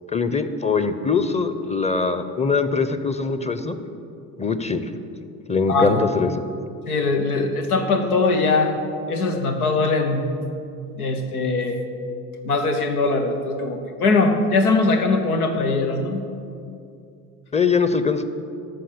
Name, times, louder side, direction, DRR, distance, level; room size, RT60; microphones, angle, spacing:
voice 1, 0.1-3.8 4.4-4.9 5.5-6.3 17.5-18.3, left 4 dB, 15° left, 10 dB, 0.8 m, -22 dB
voice 2, 5.7-6.0 6.9-8.7 9.1-10.3 11.0-11.8 12.4-16.2, left 3 dB, 90° left, 5 dB, 1.1 m, -21 dB
13.5 x 5.8 x 6.8 m, 2.5 s
hypercardioid pair, 60°, 43 cm